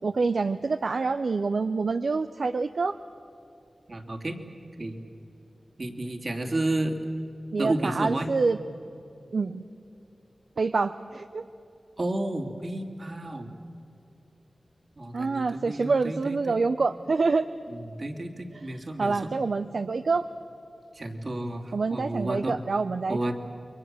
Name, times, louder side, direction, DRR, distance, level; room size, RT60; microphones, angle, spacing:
voice 1, 0.0-3.0 7.5-8.6 9.3-9.6 10.6-11.4 15.1-17.5 18.5-18.6 19.0-20.3 21.7-23.3, right 4 dB, 75° right, 9 dB, 0.6 m, -26 dB
voice 2, 3.9-4.4 4.8-5.0 5.8-7.0 7.6-8.3 12.0-13.5 15.0-16.6 17.7-19.3 20.9-22.5 23.1-23.3, right 1 dB, 55° right, 3 dB, 2.9 m, -31 dB
29.0 x 23.0 x 7.7 m, 2.7 s
cardioid pair, 45°, 0 cm